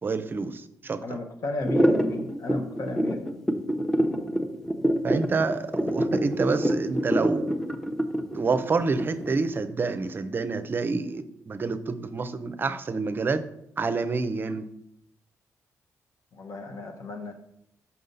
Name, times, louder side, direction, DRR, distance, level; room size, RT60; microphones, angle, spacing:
voice 1, 0.0-1.0 5.0-7.5 8.3-13.4 13.8-14.7, right 4 dB, 35° right, 12 dB, 0.5 m, -28 dB
voice 2, 1.0-3.4 16.3-17.3, left 2 dB, 65° left, 4 dB, 1.0 m, -34 dB
sound 1, 1.6-9.4, right 1 dB, 5° left, 0.7 m, -25 dB
5.8 x 5.3 x 4.0 m, 0.77 s
cardioid pair, 90°, 6 cm